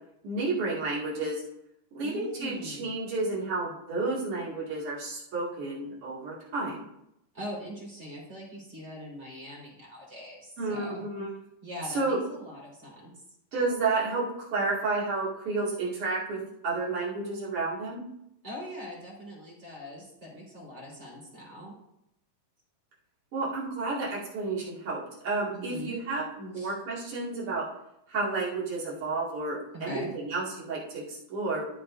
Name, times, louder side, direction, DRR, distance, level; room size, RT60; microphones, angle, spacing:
voice 1, 0.2-1.4 1.9-6.8 10.6-11.3 11.8-12.2 13.5-18.0 23.3-27.7 28.1-31.7, right 3 dB, 40° right, -6 dB, 2.4 m, -31 dB
voice 2, 2.0-2.9 7.3-11.1 11.6-13.1 18.4-21.7 25.5-25.9 26.5-26.7 29.8-30.1, left 1 dB, 15° right, -6 dB, 3.7 m, -42 dB
13.0 x 6.8 x 2.6 m, 0.80 s
omnidirectional pair, 5.1 m